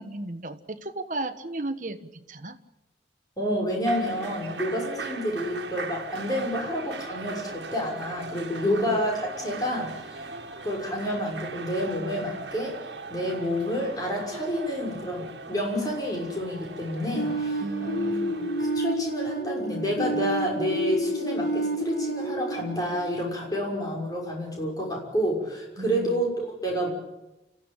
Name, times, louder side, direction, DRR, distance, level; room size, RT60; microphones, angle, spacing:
voice 1, 0.0-2.6 8.6-9.0 17.6-18.5 25.8-26.2, right 2 dB, 45° right, 10 dB, 1.3 m, -35 dB
voice 2, 3.4-12.7 13.1-17.6 18.6-26.9, equal, 20° left, -1 dB, 6.2 m, -29 dB
sound 1, 3.9-18.8, right 4 dB, 80° right, 1.9 m, -40 dB
sound 2, 17.2-23.9, right 1 dB, 65° left, 1.6 m, -30 dB
29.5 x 15.5 x 9.1 m, 1.0 s
head